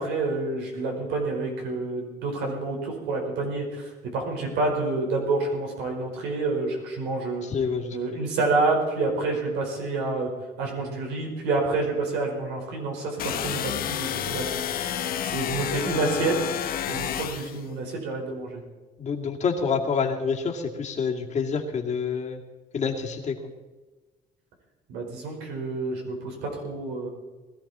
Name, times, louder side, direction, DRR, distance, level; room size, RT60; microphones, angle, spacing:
voice 1, 0.0-7.4 7.9-10.3 10.6-14.6 15.2-16.5 16.9-18.6 24.9-27.1, right 3 dB, 85° right, 0 dB, 4.9 m, -28 dB
voice 2, 7.4-8.2 19.0-22.4 22.7-23.5, left 5 dB, 45° left, 1 dB, 2.3 m, -27 dB
sound 1, 13.2-17.6, left 10 dB, 60° left, 0.9 m, -30 dB
20.5 x 13.5 x 4.3 m, 1.2 s
cardioid pair, 110°, 17 cm